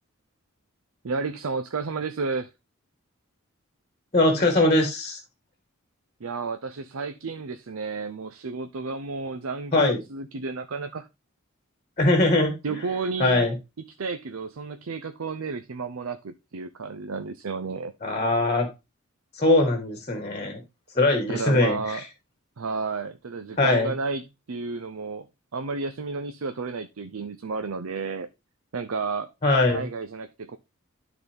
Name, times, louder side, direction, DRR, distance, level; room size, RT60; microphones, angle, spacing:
voice 1, 1.0-2.5 6.2-11.1 12.6-13.5 14.0-17.9 21.3-22.0 22.6-24.2 24.5-25.3 25.5-28.3 28.7-29.3 29.7-30.6, right 4 dB, 75° right, 0.6 m, -32 dB
voice 2, 4.1-5.2 9.7-10.0 12.0-12.6 13.2-13.5 18.0-18.7 19.3-20.6 20.9-22.0 23.6-23.9 29.4-29.9, left 2 dB, 30° left, 1.5 m, -21 dB
12.0 x 4.0 x 3.5 m
head